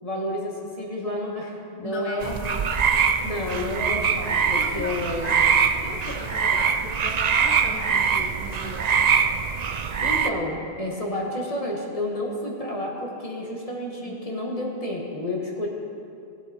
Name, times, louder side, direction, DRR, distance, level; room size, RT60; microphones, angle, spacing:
voice 1, 0.0-2.3 3.2-5.3 10.0-15.7, left 1 dB, 35° left, -2 dB, 1.8 m, -30 dB
voice 2, 1.8-2.6 3.2-3.3 4.5-5.4 5.8-8.9 14.1-14.2, left 1 dB, 15° left, -1 dB, 0.9 m, -37 dB
sound 1, 2.2-10.3, right 6 dB, 50° right, 0.5 m, -23 dB
18.0 x 7.9 x 4.5 m, 2.5 s
omnidirectional pair, 1.1 m